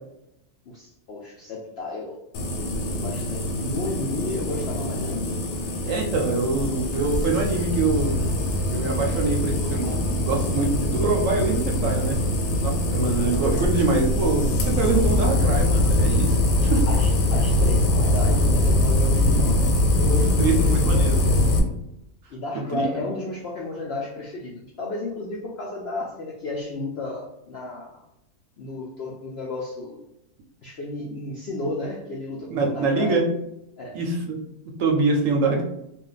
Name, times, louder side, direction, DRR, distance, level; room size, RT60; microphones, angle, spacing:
voice 1, 0.7-2.2 2.8-5.4 13.5-13.7 16.7-21.5 22.3-28.1 28.6-30.0 30.6-33.2 33.8-34.0, left 2 dB, 70° left, -2 dB, 0.6 m, -33 dB
sound 1, 2.3-21.6, left 1 dB, 85° left, 1.1 m, -22 dB
voice 2, 5.8-8.2 8.7-12.2 12.6-16.9 19.3-19.4 20.4-21.2 22.7-22.8 32.5-33.2 33.9-34.4 34.8-35.6, right 3 dB, 70° right, 1 dB, 0.9 m, -24 dB
2.5 x 2.2 x 3.9 m, 0.82 s
omnidirectional pair, 1.6 m